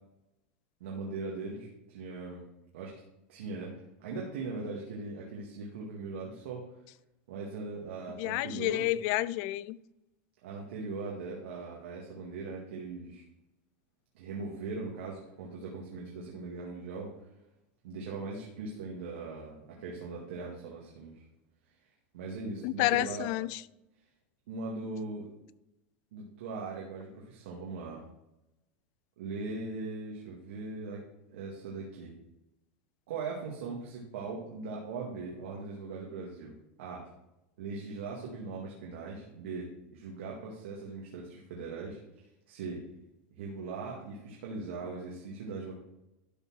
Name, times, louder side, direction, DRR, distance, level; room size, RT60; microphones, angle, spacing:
voice 1, 0.8-2.5 2.7-3.0 3.3-3.7 4.0-6.7 7.3-8.9 10.4-13.2 14.1-17.1 17.8-21.2 22.1-23.3 24.5-25.3 26.1-28.0 29.2-31.0 31.3-32.1 33.1-36.5 36.8-37.1 37.6-42.0 42.5-42.8 43.3-45.7, right 3 dB, 85° right, 2.1 m, -40 dB
voice 2, 8.1-9.8 22.6-23.6, left 17 dB, 55° left, 0.4 m, -30 dB
12.0 x 4.2 x 6.3 m
supercardioid pair, 145°, 6 cm